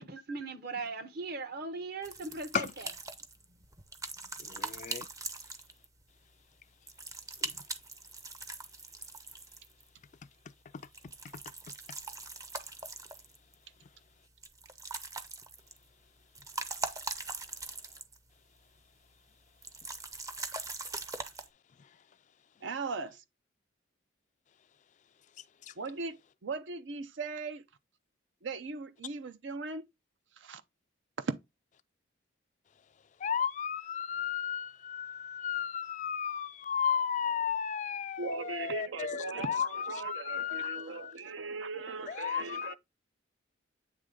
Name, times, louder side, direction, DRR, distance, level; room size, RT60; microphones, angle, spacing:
voice 1, 0.0-2.9, right 3 dB, 55° right, 1.1 m, -39 dB
sound 1, 2.0-6.0 6.9-9.9 10.8-13.5 14.4-15.8 16.2-18.3 18.6-18.7 19.6-21.5, right 3 dB, 15° right, 0.6 m, -41 dB
voice 2, 4.4-5.1 7.4-7.5 25.6-25.7 33.2-41.1 42.1-42.7, left 7 dB, 40° left, 0.3 m, -34 dB
voice 3, 22.6-23.2 25.8-27.6 28.4-29.9 30.4-30.6 31.2-31.3 38.2-42.7, right 4 dB, 70° right, 0.6 m, -38 dB
9.0 x 3.2 x 3.8 m
head